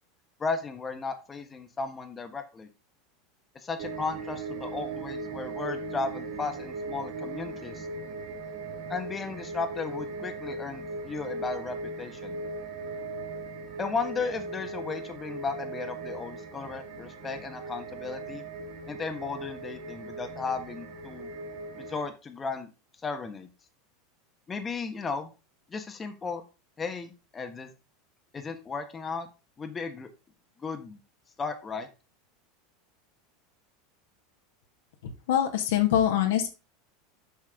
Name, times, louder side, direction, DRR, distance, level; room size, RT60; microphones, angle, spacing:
voice 1, 0.4-2.7 3.5-7.9 8.9-12.4 13.8-18.4 18.9-21.3 21.8-22.7 23.0-23.5 24.5-25.3 25.7-26.4 26.8-27.7 28.3-29.3 29.6-30.1 30.6-31.0 31.4-31.9, left 4 dB, 25° left, 6 dB, 1.3 m, -35 dB
sound 1, 3.8-22.1, right 3 dB, 55° right, 2.1 m, -38 dB
voice 2, 35.3-36.5, left 10 dB, 65° left, 5 dB, 1.5 m, -23 dB
7.7 x 6.2 x 3.7 m, 0.30 s
hypercardioid pair, 85°, 0 cm